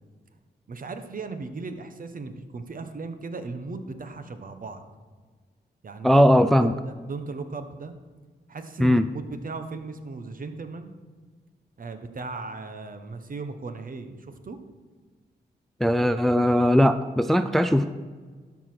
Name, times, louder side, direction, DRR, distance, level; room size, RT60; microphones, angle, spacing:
voice 1, 0.7-4.8 5.8-6.7 7.1-7.9 8.5-10.9 11.8-14.6, right 3 dB, 50° right, 8 dB, 1.1 m, -37 dB
voice 2, 6.0-6.7 8.8-9.1 15.8-17.9, equal, ahead, 11 dB, 0.4 m, -19 dB
12.5 x 4.8 x 6.0 m, 1.5 s
cardioid pair, 70°, 18 cm